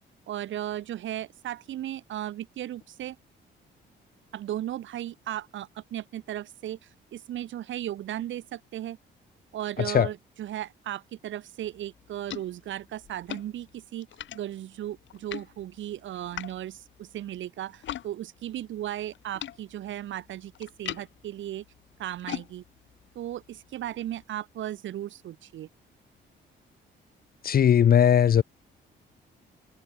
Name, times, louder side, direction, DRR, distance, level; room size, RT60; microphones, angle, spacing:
voice 1, 0.3-3.2 4.3-6.8 7.1-9.0 9.5-14.1 14.3-21.6 22.0-22.6 23.1-25.7, right 12 dB, 75° right, 1.6 m, -36 dB
sound 1, 11.6-18.1 18.4-24.2, left 11 dB, 70° left, 3.1 m, -43 dB
voice 2, 27.4-28.4, left 9 dB, 50° left, 0.8 m, -19 dB
cardioid pair, 90°, 20 cm